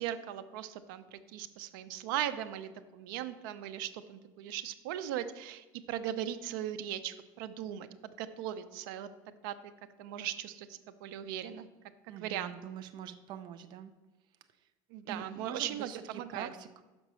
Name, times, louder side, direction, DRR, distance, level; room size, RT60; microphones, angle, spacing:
voice 1, 0.0-9.1 9.4-9.5 10.0-11.7 12.2-12.5 14.9-16.5, right 11 dB, 85° right, 11 dB, 0.6 m, -38 dB
voice 2, 12.1-13.9 15.0-16.8, right 8 dB, 45° right, 9 dB, 0.5 m, -44 dB
6.1 x 5.8 x 5.5 m, 1.2 s
cardioid pair, 145°, 11 cm